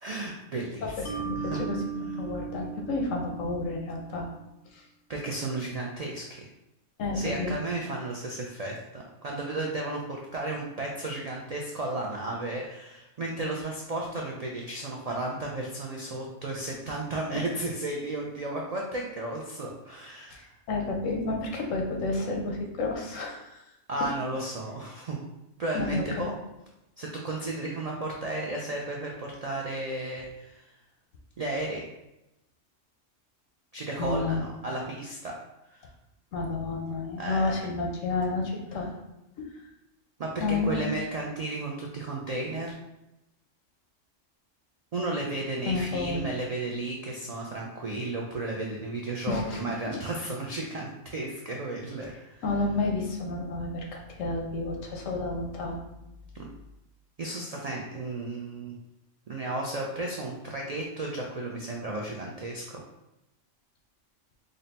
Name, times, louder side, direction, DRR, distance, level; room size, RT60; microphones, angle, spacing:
voice 1, 0.0-1.1 1.4-1.6 5.1-6.5 7.1-20.5 23.9-25.2 25.6-26.3 27.0-30.6 31.4-31.8 33.7-35.3 35.7-35.9 37.2-37.5 40.2-42.7 44.9-52.4 56.3-56.5 57.2-58.7 59.3-62.8, right 2 dB, 85° right, -1 dB, 0.3 m, -34 dB
voice 2, 1.0-4.3 4.7-4.8 7.0-7.5 20.3-23.6 25.7-26.0 34.0-34.5 36.3-38.9 39.4-39.5 40.4-40.8 45.7-46.3 49.3-49.9 52.4-55.8, left 3 dB, 85° left, 1 dB, 1.1 m, -30 dB
Mallet percussion, 1.0-4.3, right 9 dB, 50° left, 0.8 m, -38 dB
3.9 x 2.1 x 4.0 m, 0.92 s
omnidirectional pair, 1.3 m